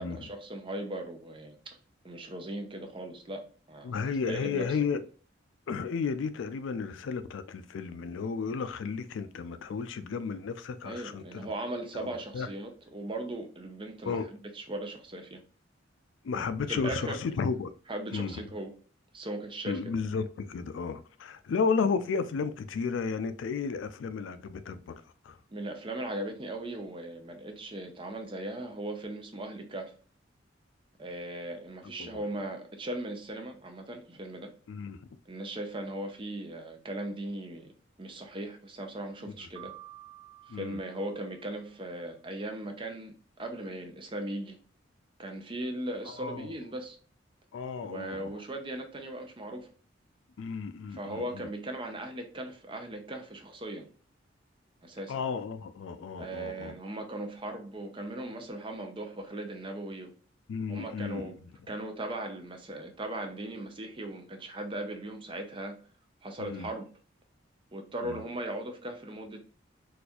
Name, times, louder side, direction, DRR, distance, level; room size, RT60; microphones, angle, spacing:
voice 1, 0.0-1.6 2.0-4.8 10.8-15.4 16.7-17.2 17.9-18.7 19.1-19.8 25.5-29.9 31.0-34.5 35.3-37.7 38.0-39.7 40.5-44.6 45.2-47.0 47.8-49.7 50.9-53.9 54.8-55.2 56.2-60.1 60.7-61.4 61.7-65.8 66.2-66.8 67.7-69.4, right 1 dB, 25° right, 0.5 m, -38 dB
voice 2, 3.8-5.0 5.7-11.5 11.9-12.5 14.1-14.3 16.2-17.7 18.1-18.3 19.7-25.4 32.0-32.1 34.7-35.0 40.5-40.8 46.1-46.5 47.5-48.3 50.4-51.5 55.1-56.7 60.5-61.3 66.4-66.7 68.0-68.2, left 5 dB, 80° left, 0.4 m, -33 dB
Piano, 39.6-41.7, right 14 dB, 90° right, 1.0 m, -51 dB
4.2 x 2.4 x 2.3 m
head